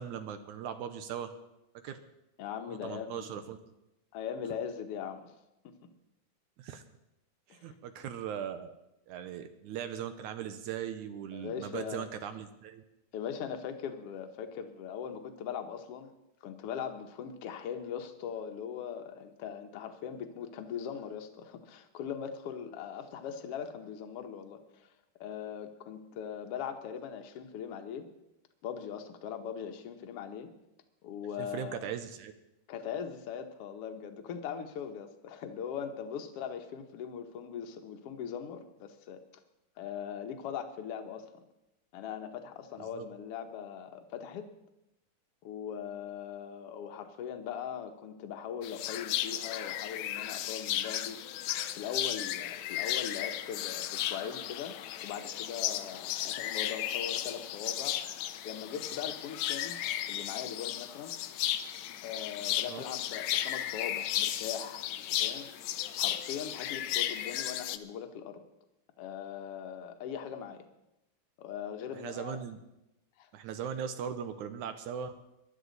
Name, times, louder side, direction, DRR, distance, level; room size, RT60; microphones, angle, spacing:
voice 1, 0.0-1.3 1.8-2.0 2.7-3.6 6.6-6.8 7.5-8.7 9.1-12.8 31.4-32.3 42.8-43.1 62.7-62.8 71.9-72.6 73.3-75.1, right 8 dB, 75° right, 9 dB, 2.1 m, -39 dB
voice 2, 2.4-3.3 4.1-5.3 5.6-5.9 7.5-7.8 11.3-12.1 13.1-16.1 16.4-24.9 25.2-28.1 28.6-30.5 31.0-31.9 32.7-39.2 39.8-41.4 41.9-44.5 45.4-61.1 62.0-65.5 66.0-68.4 69.0-70.7 71.4-72.4 73.2-73.3, left 8 dB, 60° left, 6 dB, 1.6 m, -40 dB
sound 1, 48.6-67.8, left 12 dB, 85° left, 1.5 m, -35 dB
20.5 x 11.5 x 4.1 m, 0.90 s
omnidirectional pair, 3.8 m